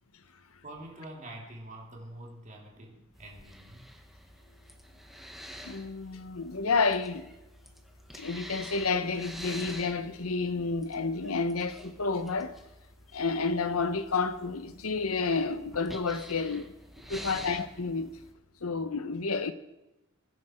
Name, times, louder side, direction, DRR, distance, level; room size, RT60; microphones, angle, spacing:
voice 1, 0.6-3.9 16.9-17.3, right 1 dB, 35° right, 2.9 m, -46 dB
sound 1, 3.1-18.3, equal, ahead, 1.2 m, -48 dB
voice 2, 5.6-7.3 8.1-12.6 13.1-16.7 17.1-18.1 18.6-19.5, left 4 dB, 70° left, 1.0 m, -30 dB
23.0 x 10.0 x 4.4 m
head